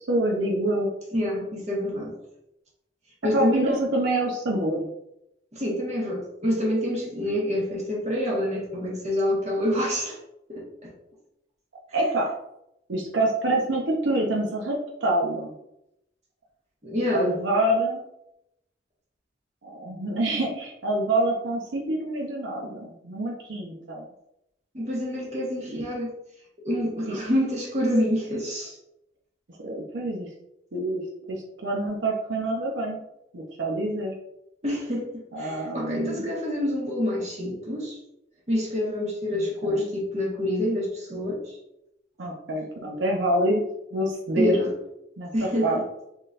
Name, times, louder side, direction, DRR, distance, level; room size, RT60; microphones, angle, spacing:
voice 1, 0.1-0.9 3.3-4.9 11.9-12.3 12.9-15.5 17.1-18.0 19.6-24.0 25.7-25.8 27.1-27.2 29.6-30.3 30.7-31.0 31.3-33.0 33.3-34.1 35.3-36.3 39.3-39.9 42.2-43.6 43.9-44.6 45.2-45.3 45.6-45.8, right 1 dB, 85° right, -1 dB, 0.7 m, -26 dB
voice 2, 1.1-2.2 3.2-3.8 5.5-10.2 10.5-10.9 16.8-17.3 24.7-26.1 26.6-28.8 34.6-38.0 38.5-41.6 44.4-44.7 45.3-45.8, left 1 dB, 40° right, -4 dB, 1.3 m, -27 dB
4.0 x 3.8 x 2.5 m, 0.83 s
head